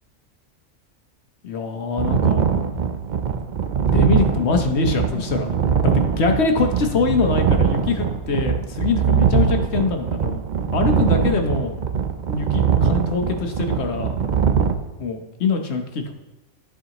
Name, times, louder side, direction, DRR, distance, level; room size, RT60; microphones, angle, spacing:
voice 1, 1.4-2.4 3.9-5.5 5.8-10.4 10.7-11.8 12.3-14.2 15.0-16.1, left 4 dB, 60° left, 4 dB, 1.1 m, -23 dB
sound 1, 2.0-14.7, right 6 dB, 50° right, 0.5 m, -21 dB
13.0 x 4.9 x 3.0 m, 1.0 s
omnidirectional pair, 1.3 m